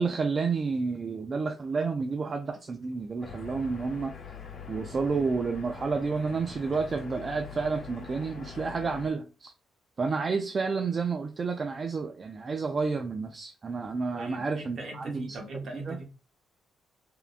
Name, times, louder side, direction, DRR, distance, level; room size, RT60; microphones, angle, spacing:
voice 1, 0.0-4.1 4.7-9.5 10.0-15.3 15.7-16.0, right 4 dB, 40° right, 0.3 m, -30 dB
sound 1, 3.2-9.1, left 5 dB, 60° left, 1.2 m, -44 dB
voice 2, 14.1-16.0, right 2 dB, 55° right, 1.0 m, -40 dB
3.6 x 2.2 x 2.4 m
cardioid pair, 90°, 0 cm